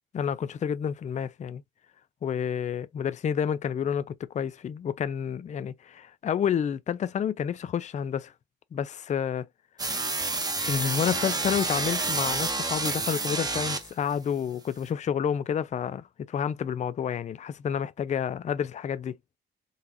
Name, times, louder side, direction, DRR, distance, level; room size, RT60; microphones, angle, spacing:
voice 1, 0.1-1.6 2.2-8.3 8.7-9.5 10.1-10.2 10.6-19.2, left 8 dB, 35° left, 0.4 m, -29 dB
sound 1, 9.8-14.1, right 3 dB, 20° right, 1.0 m, -29 dB
3.9 x 2.4 x 2.8 m
cardioid pair, 90°, 20 cm